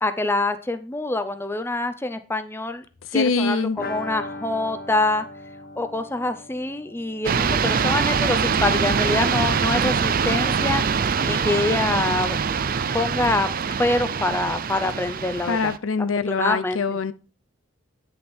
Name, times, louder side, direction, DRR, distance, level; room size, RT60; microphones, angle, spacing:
voice 1, 0.0-2.8 3.1-5.3 5.8-10.8 11.2-12.4 12.9-13.5 13.8-15.7 16.3-17.0, left 2 dB, 10° left, 9 dB, 0.6 m, -25 dB
voice 2, 3.0-3.8 15.5-17.1, left 4 dB, 80° left, 14 dB, 0.7 m, -23 dB
sound 1, 3.8-9.4 9.6-9.7 10.0-10.1, left 2 dB, 50° left, 1.1 m, -39 dB
sound 2, 7.2-15.8, right 6 dB, 45° right, 0.5 m, -23 dB
9.8 x 6.5 x 4.4 m, 0.34 s
head